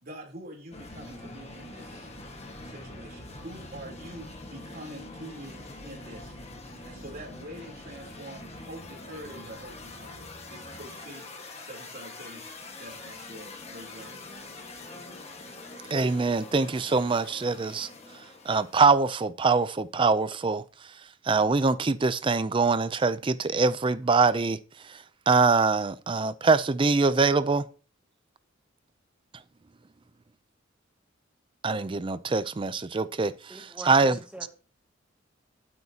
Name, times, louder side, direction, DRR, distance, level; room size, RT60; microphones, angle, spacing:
voice 1, 0.0-2.1 2.6-6.4 6.8-10.2 10.5-12.5 12.7-14.2, right 1 dB, 50° right, 3.4 m, -45 dB
sound 1, 0.7-19.0, left 2 dB, 30° left, 1.6 m, -44 dB
voice 2, 15.9-17.9 18.5-20.6 21.3-24.6 25.3-27.7 31.6-34.5, right 4 dB, 25° right, 0.4 m, -24 dB
voice 3, 33.5-34.5, right 1 dB, 5° right, 0.9 m, -44 dB
12.0 x 8.8 x 2.8 m
head